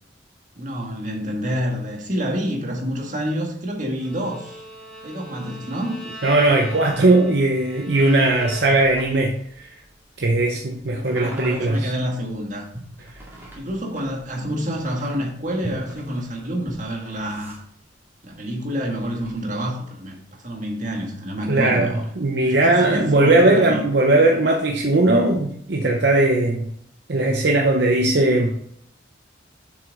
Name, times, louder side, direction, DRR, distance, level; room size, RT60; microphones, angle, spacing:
voice 1, 0.6-4.6 5.0-6.1 11.2-12.7 13.6-17.5 18.2-22.1 22.4-23.9, equal, 40° right, 1 dB, 1.7 m, -28 dB
Bowed string instrument, 4.0-9.2, equal, 5° left, 2.2 m, -40 dB
voice 2, 6.2-9.7 10.2-11.9 21.5-26.7 27.1-28.5, right 2 dB, 60° right, 2 dB, 0.7 m, -18 dB
sound 1, 6.9-18.4 18.8-19.5, right 1 dB, 10° right, 2.0 m, -42 dB
7.2 x 6.2 x 4.0 m, 0.69 s
head